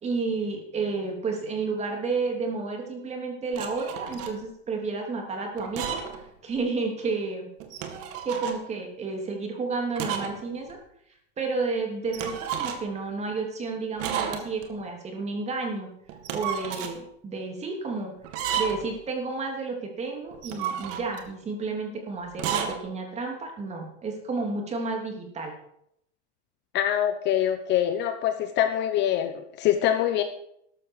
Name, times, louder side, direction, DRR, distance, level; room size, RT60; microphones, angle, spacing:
voice 1, 0.0-6.0 6.4-7.5 8.2-10.8 11.4-15.9 16.3-18.1 18.6-25.5, right 4 dB, 20° right, 2 dB, 3.1 m, -31 dB
sound 1, 3.5-4.4 5.6-6.2 6.6-6.7 7.6-8.6 10.0-10.4 10.7-10.8 12.1-13.0 14.0-14.7 16.1-17.0 18.2-19.0 20.3-21.3 22.3-22.8, right 8 dB, 40° right, 2.1 m, -32 dB
voice 2, 26.7-30.2, left 11 dB, 30° left, 8 dB, 0.9 m, -24 dB
13.5 x 11.5 x 4.8 m, 0.74 s
supercardioid pair, 150°, 35 cm